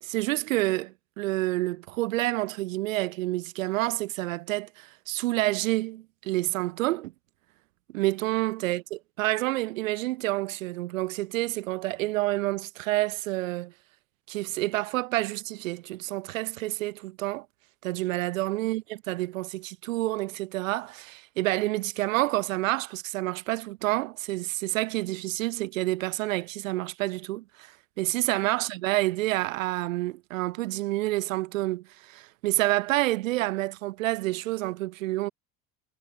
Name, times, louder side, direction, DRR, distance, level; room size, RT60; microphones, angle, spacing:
voice 1, 0.0-7.1 7.9-13.7 14.3-17.5 17.8-35.3, right 18 dB, 80° right, 2.4 m, -28 dB
hypercardioid pair, 65°, 39 cm